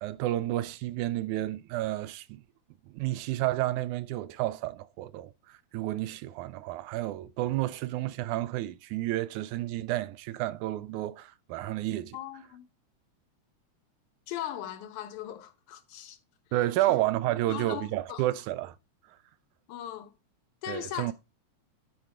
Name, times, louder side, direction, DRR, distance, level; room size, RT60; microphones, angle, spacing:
voice 1, 0.0-2.4 2.9-12.2 16.5-18.8 20.7-21.1, right 15 dB, 85° right, 2.0 m, -31 dB
voice 2, 12.1-12.7 14.3-16.2 16.5-16.6 17.5-18.2 19.7-20.1 20.6-21.1, left 11 dB, 85° left, 2.5 m, -39 dB
11.0 x 4.8 x 4.3 m
omnidirectional pair, 3.4 m